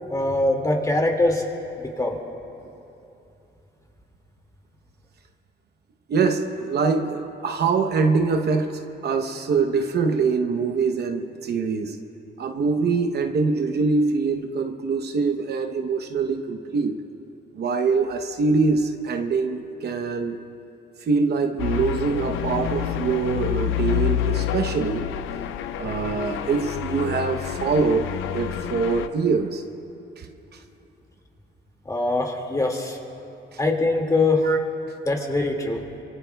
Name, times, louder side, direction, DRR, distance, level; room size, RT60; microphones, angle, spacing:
voice 1, 0.1-1.4 1.8-2.2 31.9-33.0 33.6-34.4 35.1-35.8, left 2 dB, 15° left, 1 dB, 2.1 m, -22 dB
voice 2, 6.1-12.0 12.4-16.9 17.5-20.4 21.0-25.1 25.8-29.6 30.2-30.3 34.4-34.6, right 4 dB, 55° right, 6 dB, 0.9 m, -24 dB
sound 1, 21.6-29.1, left 11 dB, 90° left, 0.6 m, -28 dB
25.0 x 23.0 x 2.3 m, 2.8 s
cardioid pair, 90°, 20 cm